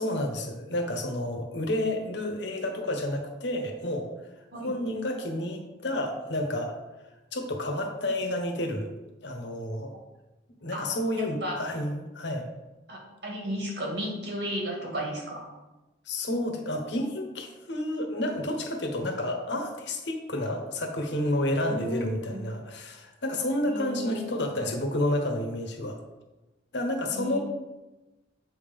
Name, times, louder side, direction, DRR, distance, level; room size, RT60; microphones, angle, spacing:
voice 1, 0.0-4.1 4.5-6.8 7.3-8.9 9.2-9.9 10.6-12.5 16.1-26.0 26.7-27.4, left 1 dB, 75° left, 4 dB, 1.1 m, -30 dB
voice 2, 11.1-11.6 12.9-15.5 21.7-22.4 23.7-24.6 27.1-27.4, equal, 70° right, -2 dB, 2.1 m, -34 dB
7.7 x 3.7 x 5.2 m, 1.1 s
head